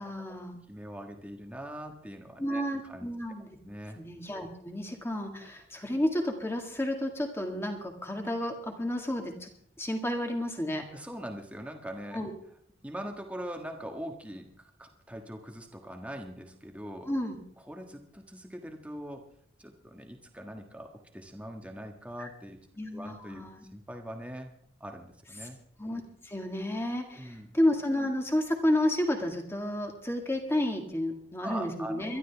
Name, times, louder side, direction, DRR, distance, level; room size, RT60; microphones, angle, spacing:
voice 1, 0.0-0.6 2.4-3.6 4.0-9.5 9.8-10.9 12.1-12.3 17.1-17.4 22.2-22.3 22.8-23.6 25.4-25.5 25.8-32.2, left 1 dB, 15° left, 3 dB, 2.0 m, -31 dB
voice 2, 0.7-3.1 3.6-4.0 10.9-12.2 12.8-17.1 17.7-19.3 19.6-22.6 22.9-23.4 23.7-24.5 24.8-25.6 27.1-27.5 31.4-32.2, right 1 dB, 5° right, 3 dB, 1.5 m, -42 dB
23.5 x 12.0 x 3.5 m, 0.63 s
head